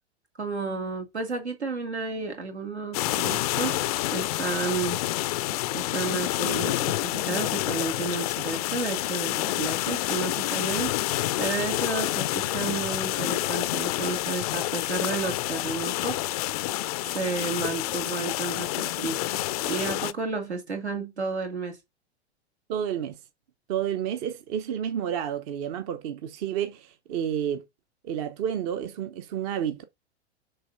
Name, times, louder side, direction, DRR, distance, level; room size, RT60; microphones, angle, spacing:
voice 1, 0.4-5.0 5.7-16.2 17.0-21.8, right 4 dB, 80° right, 2.2 m, -32 dB
sound 1, 2.9-20.1, left 16 dB, 35° left, 0.4 m, -28 dB
voice 2, 22.7-23.2 23.7-27.6 28.0-29.8, right 9 dB, 35° right, 0.7 m, -30 dB
6.8 x 3.2 x 5.2 m
figure-of-eight pair, 100°, 33 cm